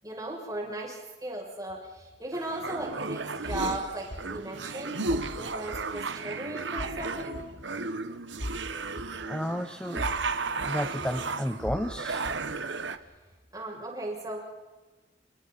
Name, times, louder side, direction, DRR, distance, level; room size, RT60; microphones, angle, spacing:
voice 1, 0.0-7.4 13.5-14.4, right 1 dB, 20° right, -2 dB, 7.1 m, -37 dB
sound 1, 2.3-13.0, right 3 dB, 80° right, 1.3 m, -34 dB
sound 2, 3.5-3.7 4.1-4.2 5.1-5.3 5.7-5.8 6.7-7.0 7.3-7.4 8.4-8.6 9.0-9.1 10.0-10.2 10.6-10.7 11.6-11.9 12.2-12.4, equal, 65° left, 2.8 m, -37 dB
voice 2, 9.2-10.1 10.6-12.3, equal, 5° left, 8 dB, 0.8 m, -32 dB
29.5 x 28.5 x 4.3 m, 1.2 s
head